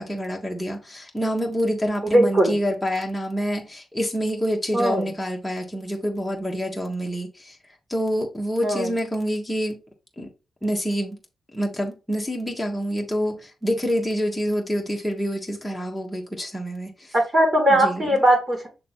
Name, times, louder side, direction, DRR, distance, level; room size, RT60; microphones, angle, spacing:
voice 1, 0.0-7.6 7.9-9.8 10.2-10.3 10.6-11.2 11.5-17.1 17.7-18.2, equal, 5° left, 1.5 m, -27 dB
voice 2, 2.1-2.5 4.7-5.1 8.6-8.9 17.3-18.7, right 1 dB, 30° right, 2.6 m, -19 dB
6.7 x 3.3 x 4.4 m
cardioid pair, 95°, 0 cm